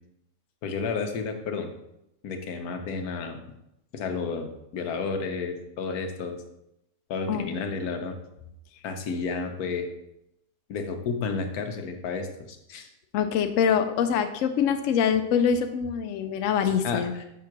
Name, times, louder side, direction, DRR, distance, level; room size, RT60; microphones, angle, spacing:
voice 1, 0.6-1.7 2.2-3.4 3.9-6.4 7.1-8.1 8.8-9.9 10.7-12.9 16.8-17.2, left 4 dB, 90° left, 5 dB, 1.3 m, -31 dB
voice 2, 13.1-17.1, left 7 dB, 70° left, 7 dB, 0.9 m, -24 dB
6.0 x 3.7 x 5.8 m, 0.83 s
omnidirectional pair, 1.5 m